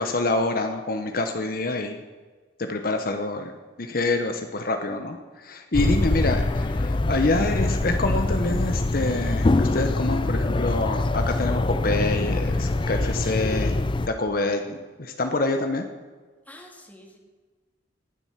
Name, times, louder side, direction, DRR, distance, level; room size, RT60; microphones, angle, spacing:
voice 1, 0.0-2.0 2.6-3.5 3.8-13.7 14.1-15.9, left 2 dB, 55° left, 6 dB, 1.0 m, -26 dB
sound 1, 5.7-14.1, left 2 dB, 30° left, 0.5 m, -24 dB
voice 2, 5.8-6.2 16.5-17.2, left 1 dB, 10° left, 1 dB, 2.2 m, -46 dB
18.5 x 7.9 x 5.8 m, 1.4 s
head